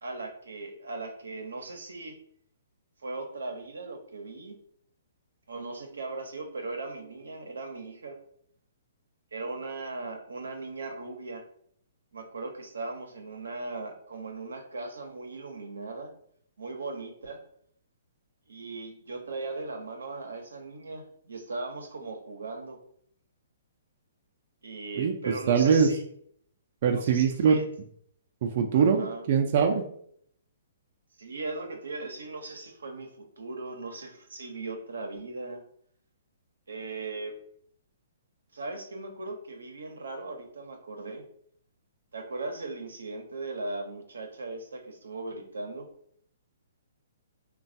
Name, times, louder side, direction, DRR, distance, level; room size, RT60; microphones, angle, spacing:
voice 1, 0.0-2.2 3.0-4.5 5.5-8.2 9.3-11.5 12.1-16.1 16.6-17.4 18.5-22.8 24.6-26.0 26.9-27.7 28.7-29.2 31.2-35.6 36.7-37.4 38.5-41.2 42.1-45.9, right 3 dB, 90° right, 4 dB, 0.6 m, -38 dB
voice 2, 25.0-25.9 26.8-27.6 28.4-29.8, right 6 dB, 50° right, 3 dB, 0.4 m, -23 dB
3.1 x 2.2 x 2.6 m, 0.65 s
hypercardioid pair, 145°, 0 cm